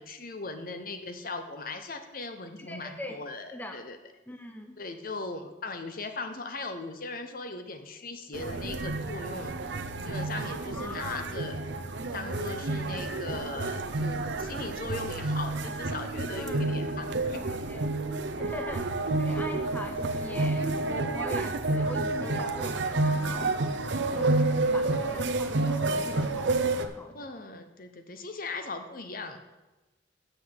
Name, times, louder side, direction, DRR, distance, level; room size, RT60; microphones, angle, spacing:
voice 1, 0.0-4.0 4.8-11.6 12.1-17.4 27.1-29.4, left 3 dB, 50° left, 8 dB, 0.9 m, -39 dB
voice 2, 2.6-3.2 3.5-3.8 4.3-4.8 10.7-11.3 16.4-16.8 17.3-17.9 18.4-18.9 19.2-23.6 24.1-27.4, left 1 dB, 10° left, 5 dB, 0.6 m, -42 dB
sound 1, 8.3-26.9, right 2 dB, 75° right, 0.7 m, -30 dB
7.7 x 6.3 x 8.0 m, 1.1 s
head